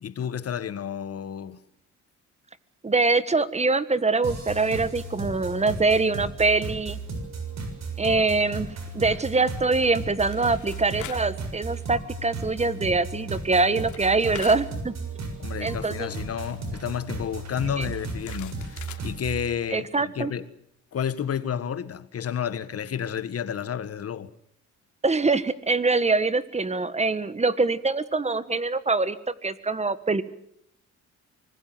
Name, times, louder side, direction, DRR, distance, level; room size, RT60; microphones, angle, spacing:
voice 1, 0.0-1.6 15.4-20.5 20.9-24.3, left 8 dB, 50° left, 1.6 m, -31 dB
voice 2, 2.8-7.0 8.0-14.9 15.6-16.1 17.8-17.9 19.7-20.3 25.0-30.2, right 3 dB, 20° right, 1.5 m, -24 dB
sound 1, 4.2-19.5, right 3 dB, 60° right, 7.0 m, -35 dB
sound 2, 10.0-11.4 11.7-11.9 13.2-13.3 13.5-15.4 15.6-15.7 17.3-19.1, left 11 dB, 80° left, 3.0 m, -44 dB
25.0 x 20.0 x 7.8 m
cardioid pair, 90°, 30 cm